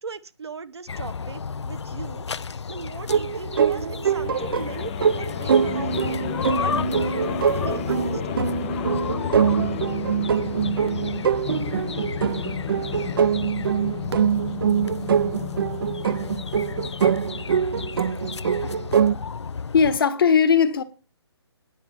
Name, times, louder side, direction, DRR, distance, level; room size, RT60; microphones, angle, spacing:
voice 1, 0.0-2.3 2.7-7.2 7.5-8.5, right 5 dB, 70° right, 1.1 m, -38 dB
sound 1, 0.9-20.0, left 5 dB, 75° left, 0.5 m, -33 dB
sound 2, 3.1-19.1, right 8 dB, 50° right, 0.5 m, -24 dB
sound 3, 4.2-17.4, left 11 dB, 20° left, 0.5 m, -33 dB
voice 2, 18.5-19.0 19.7-20.8, left 6 dB, 55° left, 1.5 m, -20 dB
9.7 x 6.8 x 7.1 m
figure-of-eight pair, 150°, 15 cm